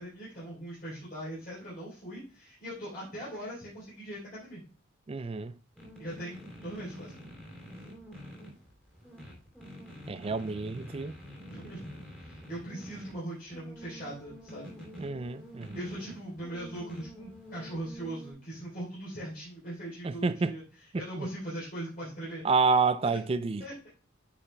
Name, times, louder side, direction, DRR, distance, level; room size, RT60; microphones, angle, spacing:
voice 1, 0.0-4.6 6.0-7.2 11.5-11.9 12.2-14.8 15.7-22.4 23.0-23.2 23.6-23.9, right 1 dB, 45° left, 3.7 m, -40 dB
voice 2, 5.1-5.6 10.1-11.1 15.0-15.8 20.0-20.6 20.9-21.3 22.4-23.6, right 4 dB, 30° right, 0.3 m, -29 dB
sound 1, 5.8-18.3, equal, 5° left, 3.1 m, -47 dB
9.6 x 5.7 x 2.2 m
head